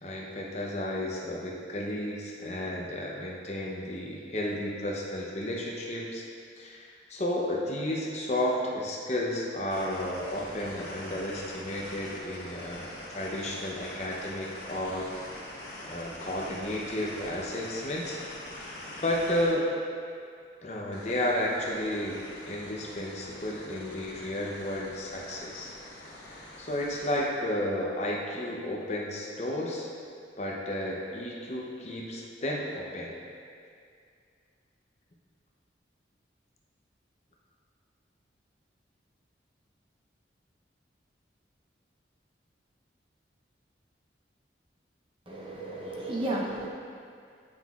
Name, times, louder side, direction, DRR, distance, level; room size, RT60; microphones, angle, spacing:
voice 1, 0.0-6.2 6.6-15.1 15.8-18.2 18.6-18.7 19.0-19.7 20.6-25.7 26.1-29.9 30.4-33.2, left 1 dB, 35° left, -2 dB, 0.7 m, -32 dB
sound 1, 9.7-19.6 20.9-27.2, left 1 dB, 80° left, 1.5 m, -44 dB
voice 2, 45.3-46.7, right 1 dB, 30° right, -4 dB, 0.8 m, -33 dB
8.8 x 5.7 x 2.4 m, 2.3 s
head